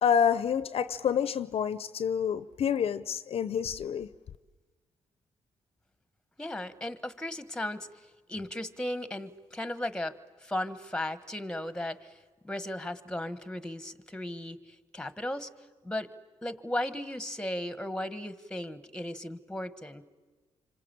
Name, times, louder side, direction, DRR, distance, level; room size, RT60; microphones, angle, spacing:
voice 1, 0.0-4.1, left 8 dB, 60° left, 15 dB, 0.8 m, -28 dB
voice 2, 6.4-7.9 8.3-10.2 10.4-12.2 12.4-15.5 15.8-16.1 16.4-20.1, left 1 dB, 5° left, 13 dB, 1.4 m, -36 dB
26.5 x 26.0 x 8.7 m, 1.3 s
cardioid pair, 80°, 11 cm